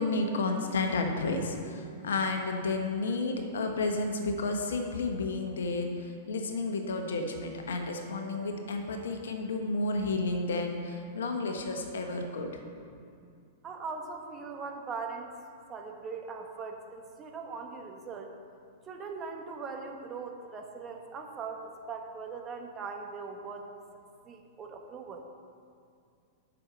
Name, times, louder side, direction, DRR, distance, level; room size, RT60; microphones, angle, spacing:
voice 1, 0.0-12.5, left 3 dB, 75° left, 4 dB, 1.2 m, -31 dB
voice 2, 13.6-15.3 15.7-18.3 18.9-23.7 24.3-25.2, right 4 dB, 30° right, 2 dB, 1.3 m, -40 dB
7.5 x 6.4 x 7.5 m, 2.3 s
hypercardioid pair, 105°, 0 cm